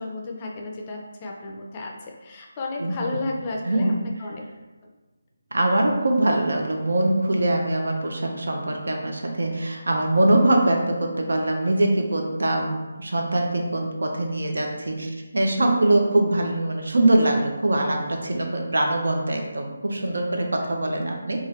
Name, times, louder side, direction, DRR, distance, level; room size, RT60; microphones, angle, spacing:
voice 1, 0.0-3.9 4.2-4.4 20.6-20.7, left 2 dB, 30° left, 0 dB, 0.4 m, -33 dB
voice 2, 2.8-3.2 3.7-4.0 5.5-21.4, right 1 dB, 75° right, 2 dB, 0.5 m, -23 dB
2.6 x 2.4 x 3.1 m, 1.2 s
figure-of-eight pair, 155°, 0 cm